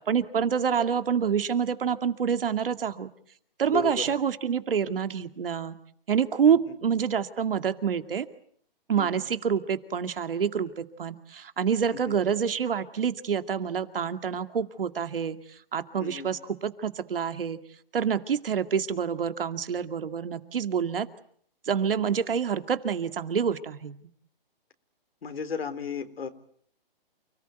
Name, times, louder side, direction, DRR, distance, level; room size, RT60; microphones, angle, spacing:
voice 1, 0.1-3.1 3.6-5.8 6.1-8.3 8.9-15.4 15.7-17.6 17.9-21.1 21.7-24.1, right 7 dB, 70° right, 9 dB, 2.3 m, -27 dB
voice 2, 3.7-4.2 6.5-6.8 9.0-9.2 12.1-12.2 16.0-16.3 25.2-26.3, left 6 dB, 80° left, 8 dB, 3.8 m, -34 dB
29.5 x 19.0 x 9.2 m, 0.63 s
hypercardioid pair, 160°, 29 cm